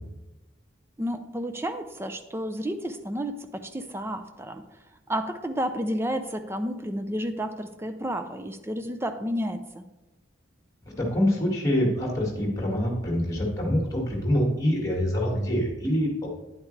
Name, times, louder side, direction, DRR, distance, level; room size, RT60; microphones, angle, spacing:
voice 1, 1.0-4.6 5.1-9.9, equal, 10° right, 8 dB, 0.5 m, -31 dB
voice 2, 11.0-16.3, equal, 15° left, -1 dB, 1.9 m, -25 dB
9.6 x 8.3 x 3.3 m, 1.0 s
head